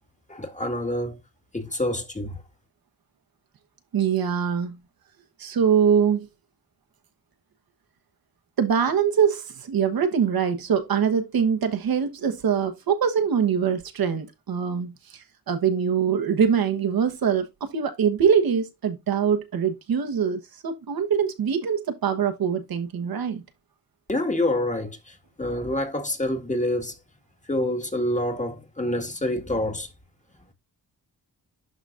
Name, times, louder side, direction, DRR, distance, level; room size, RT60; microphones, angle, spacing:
voice 1, 0.3-1.2 1.5-2.4 24.1-27.0 27.5-29.9, left 1 dB, 20° left, 1.8 m, -27 dB
voice 2, 3.9-4.8 5.4-6.3 8.6-23.4, right 7 dB, 70° right, 1.3 m, -23 dB
12.0 x 4.0 x 2.5 m
cardioid pair, 85°, 37 cm